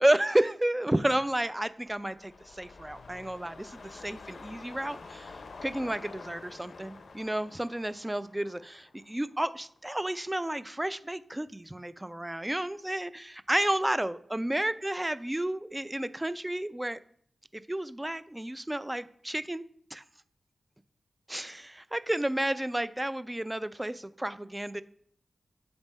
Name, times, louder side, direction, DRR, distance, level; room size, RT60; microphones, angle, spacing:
voice 1, 0.0-5.3 5.6-17.0 17.5-19.6 19.9-20.0 21.3-24.8, right 1 dB, 15° right, 14 dB, 0.3 m, -31 dB
sound 1, 1.5-9.9 10.3-10.4, left 4 dB, 75° left, 0.5 m, -48 dB
8.8 x 3.5 x 4.1 m, 0.63 s
wide cardioid pair, 75°, 0 cm